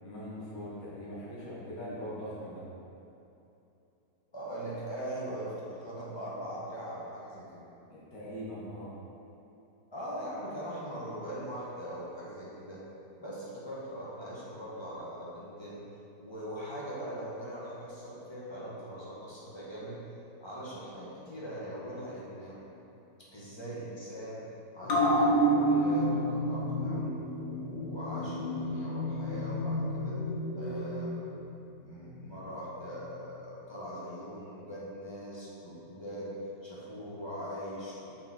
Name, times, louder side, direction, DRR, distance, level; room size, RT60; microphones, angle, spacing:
voice 1, 0.0-2.6 7.9-8.9, equal, 55° left, -9 dB, 2.1 m, -41 dB
voice 2, 4.3-7.6 9.9-12.8 13.2-15.8 16.2-20.0 20.4-22.6 23.2-24.4 24.7-27.1 27.6-30.2 30.5-31.1 31.8-36.3 36.6-38.1, equal, 15° left, -8 dB, 1.5 m, -41 dB
sound 1, 24.8-31.8 32.1-32.2, right 1 dB, 80° left, 1.6 m, -29 dB
6.6 x 5.4 x 4.5 m, 2.9 s
omnidirectional pair, 1.8 m